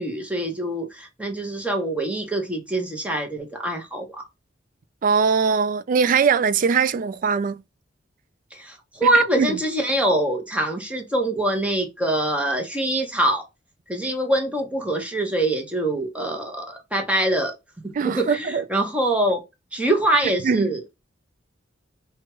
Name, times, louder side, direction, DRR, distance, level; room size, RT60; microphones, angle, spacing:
voice 1, 0.0-4.2 8.5-13.4 13.9-17.5 18.0-19.4 19.7-20.8, right 1 dB, 5° right, 0.8 m, -24 dB
voice 2, 5.0-7.6 9.1-9.6 17.9-18.6 20.4-20.7, right 5 dB, 45° right, 0.3 m, -21 dB
4.4 x 2.3 x 2.9 m
head